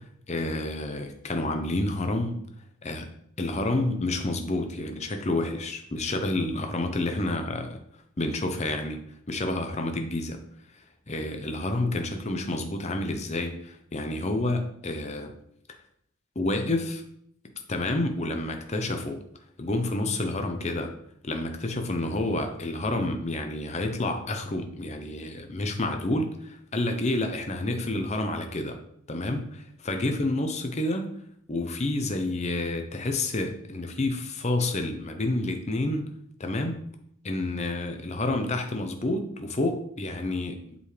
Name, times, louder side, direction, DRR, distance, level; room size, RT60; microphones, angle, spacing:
voice 1, 0.0-2.4 2.8-3.1 3.4-7.8 8.2-10.4 11.1-15.3 16.4-17.0 17.7-19.2 19.6-20.9 21.2-28.8 29.1-31.1 31.5-36.1 36.4-36.8 37.2-40.6, left 2 dB, 30° left, 6 dB, 0.7 m, -29 dB
7.9 x 5.3 x 3.3 m, 0.70 s
head